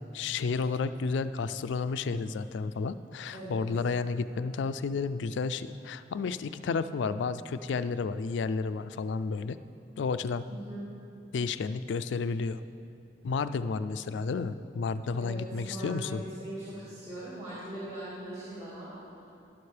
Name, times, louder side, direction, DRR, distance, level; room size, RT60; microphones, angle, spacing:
voice 1, 0.1-9.6 10.0-10.4 11.3-12.6 13.2-16.2, left 4 dB, 85° left, 13 dB, 0.4 m, -31 dB
voice 2, 15.2-19.0, right 1 dB, 35° right, -11 dB, 2.0 m, -40 dB
11.5 x 11.0 x 3.3 m, 2.6 s
head